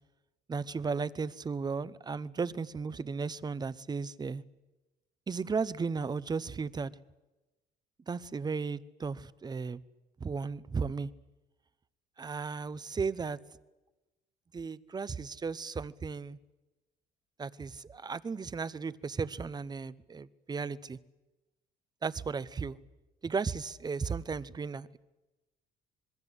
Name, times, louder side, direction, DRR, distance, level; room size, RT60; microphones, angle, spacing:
voice 1, 0.5-4.4 5.3-6.9 8.1-9.8 10.2-11.1 12.2-13.4 14.5-16.4 17.4-21.0 22.0-22.8 23.2-25.0, right 5 dB, 25° right, 17 dB, 0.9 m, -35 dB
26.0 x 21.5 x 8.2 m, 1.1 s
cardioid pair, 110°, 17 cm